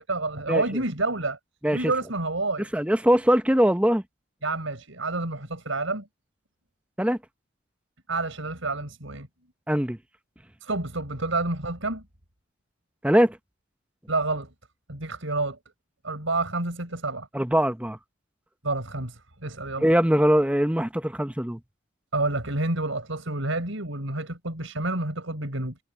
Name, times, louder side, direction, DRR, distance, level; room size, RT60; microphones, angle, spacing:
voice 1, 0.1-1.4 1.7-2.7 4.4-6.1 8.1-9.3 10.6-12.0 14.1-14.5 14.9-15.6 16.0-17.3 18.6-19.9 22.1-25.8, right 2 dB, 85° right, 5.2 m, -29 dB
voice 2, 2.7-4.0 7.0-7.2 9.7-10.0 13.0-13.4 17.3-18.0 19.8-21.6, equal, 5° right, 0.8 m, -21 dB
head